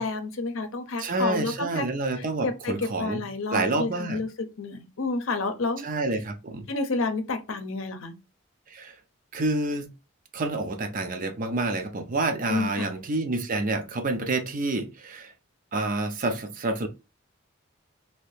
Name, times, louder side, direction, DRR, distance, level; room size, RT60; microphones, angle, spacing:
voice 1, 0.0-1.8 2.2-5.8 6.7-8.2 12.5-13.0, left 3 dB, 70° left, 0.6 m, -30 dB
voice 2, 1.0-3.2 3.5-4.2 5.8-6.7 8.7-9.0 9.3-9.9 10.3-15.3 15.7-16.9, right 2 dB, 40° right, 0.5 m, -28 dB
2.8 x 2.7 x 3.2 m
head